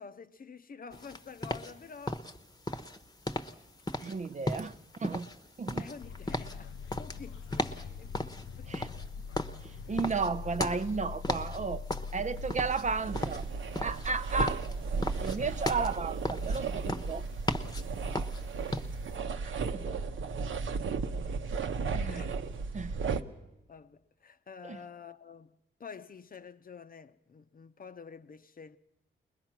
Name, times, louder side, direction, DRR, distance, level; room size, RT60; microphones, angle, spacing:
voice 1, 0.0-2.2 5.8-8.7 19.9-20.0 22.1-22.4 23.1-23.2 23.7-28.8, left 6 dB, 45° left, 0.8 m, -49 dB
sound 1, 0.9-19.1, left 1 dB, 20° left, 1.0 m, -37 dB
voice 2, 4.0-4.7 5.0-5.3 5.6-5.9 8.7-8.9 9.6-11.8 12.1-13.4 13.8-14.6 15.2-17.2 19.4-19.9 21.2-21.3 21.9-22.3 22.7-23.0 24.6-24.8, right 4 dB, 35° right, 0.6 m, -33 dB
sound 2, 6.0-12.5, left 5 dB, 80° left, 0.6 m, -42 dB
sound 3, 12.3-23.2, right 4 dB, 75° right, 1.0 m, -35 dB
21.0 x 20.5 x 6.0 m
cardioid pair, 75°, 21 cm